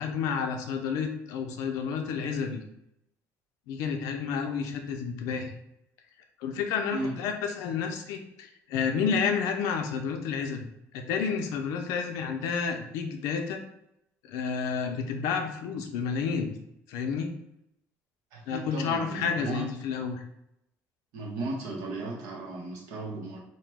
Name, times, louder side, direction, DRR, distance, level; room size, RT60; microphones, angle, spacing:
voice 1, 0.0-2.6 3.7-5.5 6.4-10.7 10.9-13.6 14.2-16.5 16.9-17.3 18.5-20.2, left 6 dB, 75° left, 5 dB, 0.5 m, -30 dB
voice 2, 6.9-7.2 18.3-19.7 21.1-23.4, right 2 dB, 75° right, 0 dB, 0.8 m, -35 dB
2.9 x 2.1 x 3.3 m, 0.79 s
cardioid pair, 165°, 6 cm